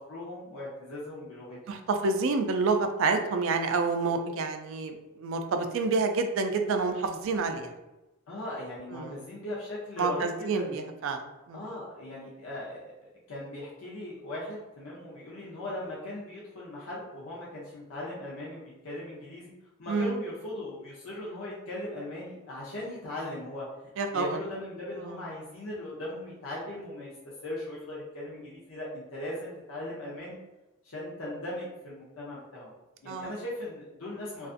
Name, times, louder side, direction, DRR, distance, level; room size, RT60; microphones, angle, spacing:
voice 1, 0.0-1.8 8.3-10.8 11.5-12.9 13.3-19.5 19.8-23.7 24.1-27.1 27.4-30.4 30.8-32.7 33.0-34.5, left 1 dB, 70° left, -6 dB, 0.6 m, -39 dB
voice 2, 1.7-7.7 8.9-9.2 10.0-11.6 19.9-20.2 24.0-24.4 25.0-25.2 33.1-33.3, right 4 dB, 65° right, 6 dB, 0.3 m, -28 dB
2.4 x 2.4 x 2.5 m, 1.0 s
head